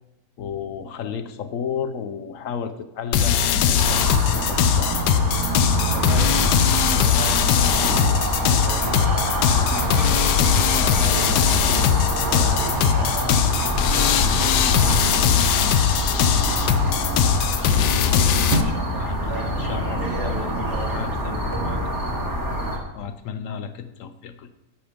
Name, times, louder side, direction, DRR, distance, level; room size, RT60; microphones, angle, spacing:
voice 1, 0.4-5.0 17.4-20.0 20.4-20.5 20.8-21.8 22.9-24.5, left 7 dB, 65° left, 9 dB, 0.9 m, -33 dB
sound 1, 3.1-18.6, left 8 dB, 80° left, 1.2 m, -20 dB
sound 2, 3.8-22.8, equal, 15° right, 1.2 m, -26 dB
voice 2, 5.9-10.0 10.6-11.8 12.2-13.5 13.9-15.1 19.2-21.6, right 2 dB, 70° right, -6 dB, 3.4 m, -36 dB
sound 3, 7.7-21.2, right 3 dB, 50° right, 1.1 m, -35 dB
8.7 x 7.3 x 5.1 m, 0.91 s
omnidirectional pair, 1.8 m